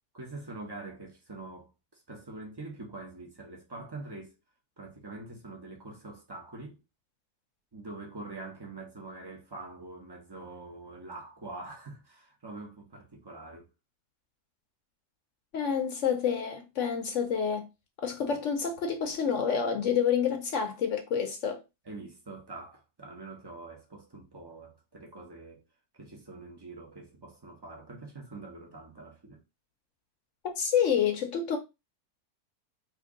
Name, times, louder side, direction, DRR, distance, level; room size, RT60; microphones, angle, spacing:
voice 1, 0.1-4.4 4.8-6.8 7.7-13.7 21.8-25.6 25.9-29.4, right 3 dB, 30° right, 0.4 m, -44 dB
voice 2, 15.5-17.7 18.0-21.6 30.6-31.6, left 7 dB, 65° left, 0.8 m, -28 dB
2.9 x 2.7 x 3.6 m
omnidirectional pair, 1.6 m